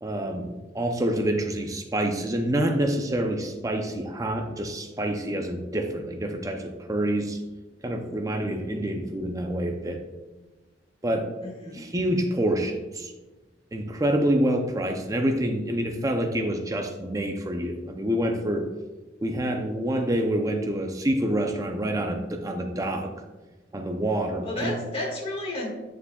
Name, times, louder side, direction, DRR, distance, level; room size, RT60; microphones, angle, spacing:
voice 1, 0.0-7.4 7.8-10.0 11.0-11.3 11.7-13.1 13.7-18.7 19.2-23.1 23.7-24.8, right 1 dB, 20° right, 4 dB, 0.5 m, -27 dB
voice 2, 11.4-11.9 24.4-25.7, left 1 dB, 30° left, -2 dB, 1.7 m, -32 dB
9.2 x 6.9 x 2.3 m, 1.2 s
head